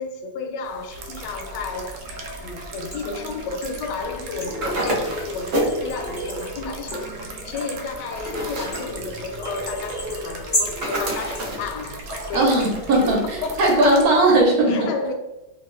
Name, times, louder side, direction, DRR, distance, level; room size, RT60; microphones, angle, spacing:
voice 1, 0.0-2.0 2.4-12.7 13.0-13.7 14.7-15.1, left 3 dB, 85° left, 4 dB, 1.2 m, -31 dB
sound 1, 0.6-14.4, equal, 35° left, 0.5 m, -36 dB
sound 2, 0.9-14.0, right 2 dB, 85° right, 1.2 m, -37 dB
sound 3, 4.6-5.8 8.2-8.9 10.8-11.7, right 1 dB, 45° right, 0.9 m, -27 dB
voice 2, 12.3-14.9, right 2 dB, 65° right, -1 dB, 1.2 m, -18 dB
3.0 x 2.2 x 3.1 m, 1.0 s
omnidirectional pair, 1.8 m